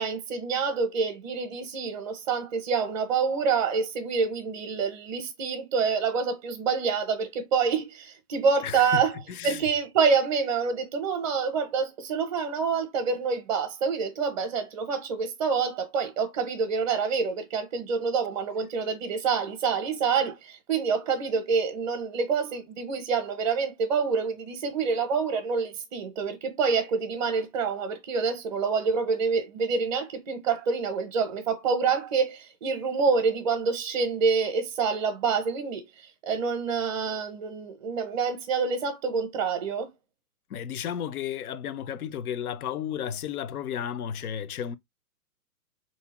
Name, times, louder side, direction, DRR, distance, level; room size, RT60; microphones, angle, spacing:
voice 1, 0.0-9.1 9.4-35.8 36.3-39.9, right 5 dB, 30° right, 0.6 m, -27 dB
voice 2, 8.6-9.6 40.5-44.8, left 9 dB, 70° left, 0.6 m, -33 dB
3.5 x 2.7 x 2.8 m
hypercardioid pair, 140°, 46 cm